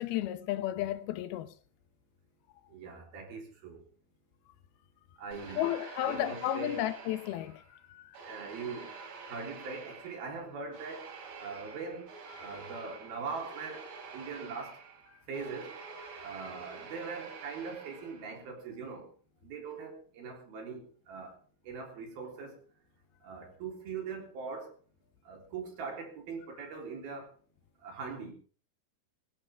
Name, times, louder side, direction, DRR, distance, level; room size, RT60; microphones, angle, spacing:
voice 1, 0.0-1.5 5.5-8.2 12.3-12.6, left 13 dB, 85° left, 2.9 m, -33 dB
voice 2, 2.7-3.8 5.2-5.6 6.0-6.7 8.2-9.0 9.3-12.1 12.4-15.8 16.2-19.1 19.4-21.4 21.6-22.6 23.2-24.8 25.2-27.3 27.8-28.3, right 5 dB, 75° right, 5.6 m, -41 dB
sound 1, 5.3-7.7 8.1-18.5, right 5 dB, 60° right, 4.2 m, -48 dB
20.0 x 16.0 x 3.6 m
omnidirectional pair, 4.3 m